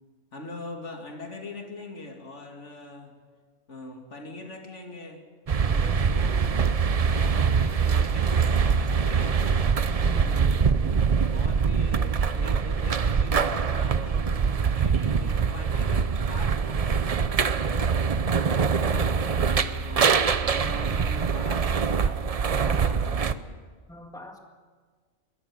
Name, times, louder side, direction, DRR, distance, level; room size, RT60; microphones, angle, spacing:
voice 1, 0.3-3.2 3.7-5.3 5.7-6.5 7.0-9.8 11.3-17.9 18.5-23.5, left 2 dB, 75° left, 3 dB, 2.8 m, -42 dB
sound 1, 5.5-23.3, right 6 dB, 40° right, 0.6 m, -24 dB
voice 2, 5.6-6.1 10.0-11.1 23.9-24.4, right 2 dB, 5° left, 3 dB, 1.9 m, -40 dB
22.5 x 13.5 x 9.7 m, 1.5 s
omnidirectional pair, 1.2 m